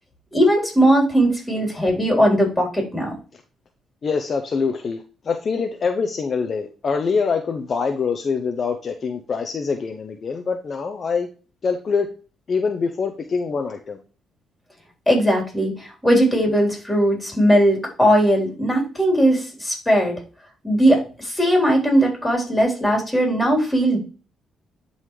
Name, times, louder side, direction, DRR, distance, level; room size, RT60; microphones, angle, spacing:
voice 1, 0.3-3.1 15.1-20.2 20.6-24.0, equal, 10° left, -1 dB, 3.8 m, -19 dB
voice 2, 4.0-11.3 11.6-12.1 12.5-14.0, left 5 dB, 45° left, 5 dB, 0.8 m, -24 dB
11.0 x 4.1 x 3.2 m, 0.37 s
cardioid pair, 90°, 0 cm